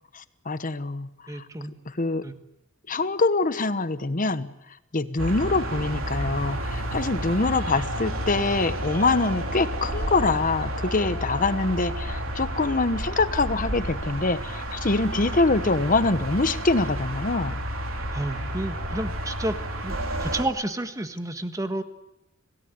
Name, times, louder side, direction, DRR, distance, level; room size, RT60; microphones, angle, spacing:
voice 1, 0.1-1.4 1.9-2.3 2.9-4.5 4.9-17.6, left 3 dB, 40° left, 13 dB, 1.1 m, -24 dB
voice 2, 1.3-1.7 2.2-2.3 18.1-19.6 19.8-21.8, right 1 dB, 15° right, 8 dB, 1.5 m, -30 dB
sound 1, 5.2-20.4, right 1 dB, 85° right, 3.4 m, -31 dB
27.0 x 17.5 x 9.6 m, 0.91 s
head